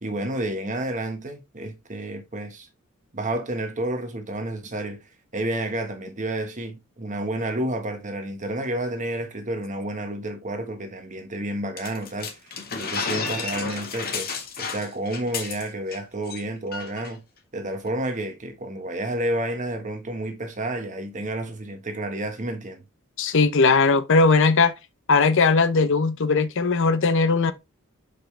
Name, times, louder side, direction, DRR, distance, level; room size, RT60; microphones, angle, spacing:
voice 1, 0.0-2.7 3.1-5.0 5.3-14.3 14.6-17.2 17.5-22.8, right 1 dB, 35° right, 1.3 m, -30 dB
sound 1, 11.8-16.0 16.3-16.4 16.7-17.1, left 5 dB, 45° left, 1.6 m, -32 dB
voice 2, 23.2-24.7 25.1-27.5, left 4 dB, 65° left, 0.7 m, -19 dB
6.4 x 5.3 x 3.3 m
head